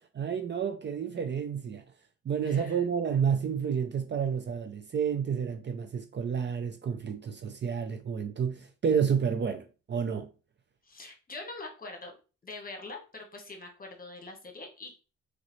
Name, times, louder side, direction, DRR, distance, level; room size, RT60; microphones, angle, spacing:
voice 1, 0.2-1.8 2.2-10.3, right 7 dB, 35° right, 0.6 m, -30 dB
voice 2, 2.4-2.8 10.8-12.1 12.4-15.0, left 3 dB, 30° left, 1.3 m, -44 dB
3.8 x 3.2 x 3.1 m
cardioid pair, 90°, 30 cm